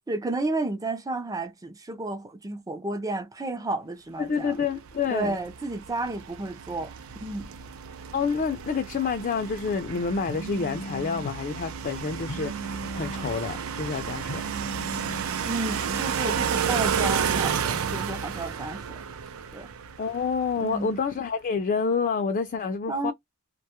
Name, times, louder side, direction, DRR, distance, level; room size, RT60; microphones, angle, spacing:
voice 1, 0.1-4.6 5.1-6.9 7.2-7.5 15.5-19.0 19.5-19.7 20.6-20.9 22.9-23.1, right 2 dB, 15° right, 0.4 m, -32 dB
voice 2, 4.2-5.4 8.1-14.5 20.0-23.1, left 5 dB, 40° left, 0.4 m, -28 dB
sound 1, 4.7-20.8, right 7 dB, 70° right, 0.5 m, -32 dB
Telephone, 10.3-11.3 12.3-13.3 14.3-15.2, right 1 dB, 85° left, 0.6 m, -37 dB
2.2 x 2.0 x 2.8 m
head